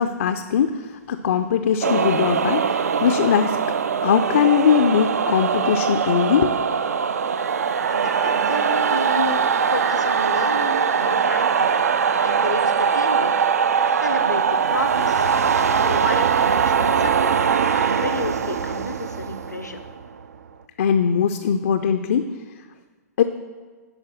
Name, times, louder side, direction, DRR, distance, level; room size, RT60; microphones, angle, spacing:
voice 1, 0.0-3.6 4.0-6.5 8.2-8.3 9.1-9.4 20.8-22.4 23.2-23.3, left 7 dB, 50° left, 7 dB, 0.4 m, -20 dB
sound 1, 1.8-20.4, right 6 dB, 60° right, 0.4 m, -21 dB
voice 2, 7.9-9.3 9.7-11.7 12.2-13.3 14.0-15.3 15.8-17.3 17.7-19.8, left 2 dB, 85° left, 7 dB, 0.7 m, -31 dB
10.5 x 4.4 x 6.0 m, 1.4 s
figure-of-eight pair, 115°, 9 cm